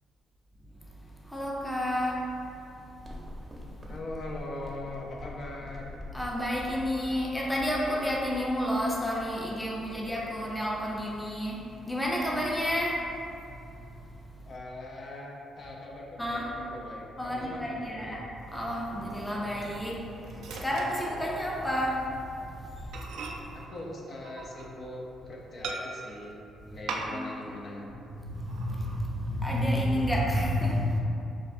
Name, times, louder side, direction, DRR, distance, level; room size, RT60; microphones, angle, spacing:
voice 1, 1.3-2.2 6.1-11.6 11.9-13.0 16.2-16.4 17.2-18.2 18.5-20.0 20.6-22.0 27.1-27.2 27.8-31.0, equal, 10° left, -3 dB, 0.6 m, -30 dB
sound 1, 3.0-8.1, left 1 dB, 20° right, 0.7 m, -44 dB
voice 2, 3.9-5.9 14.4-18.2 23.5-26.4 26.6-27.9, left 2 dB, 50° left, -2 dB, 0.6 m, -41 dB
Microwave oven, 18.8-21.7 22.1-22.3 22.6-22.7 22.9-25.0 25.6-26.2 26.9-27.5 27.7-27.8 28.3-29.1 29.5-30.1, right 3 dB, 80° right, 0.4 m, -41 dB
6.4 x 2.4 x 2.6 m, 2.7 s
cardioid pair, 90°, 0 cm